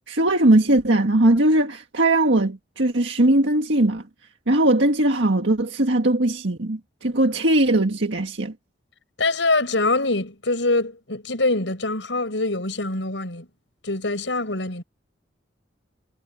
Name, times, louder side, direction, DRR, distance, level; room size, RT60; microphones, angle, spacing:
voice 1, 0.1-4.0 4.5-8.5, right 1 dB, 80° right, 1.7 m, -19 dB
voice 2, 9.2-13.5 13.8-14.8, left 2 dB, 80° left, 6.3 m, -24 dB
head